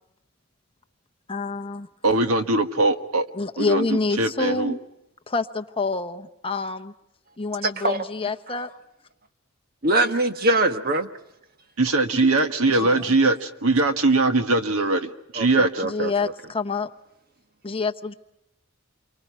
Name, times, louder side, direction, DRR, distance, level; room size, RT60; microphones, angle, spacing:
voice 1, 1.3-1.9 3.3-4.8 5.3-6.9 7.4-8.7 12.8-13.1 15.8-16.9 17.6-18.1, left 3 dB, 25° left, 9 dB, 0.9 m, -27 dB
voice 2, 2.0-3.3 3.6-3.9 4.2-4.7 11.8-15.7, right 2 dB, 80° right, 8 dB, 1.5 m, -21 dB
voice 3, 9.8-11.1 15.3-16.3, right 1 dB, 45° right, 8 dB, 1.3 m, -23 dB
29.0 x 24.0 x 5.8 m, 0.87 s
head